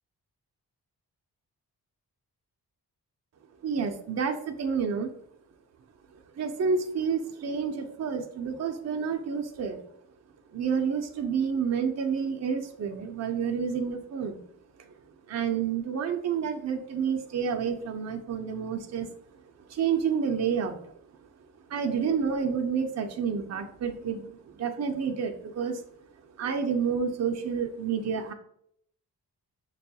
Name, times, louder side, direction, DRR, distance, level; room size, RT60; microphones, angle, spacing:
voice 1, 3.6-5.1 6.4-9.8 10.5-14.4 15.3-19.1 19.7-20.8 21.7-25.8 26.4-28.3, right 6 dB, 45° right, 4 dB, 0.5 m, -29 dB
5.9 x 2.3 x 2.7 m, 0.70 s
cardioid pair, 65°, 39 cm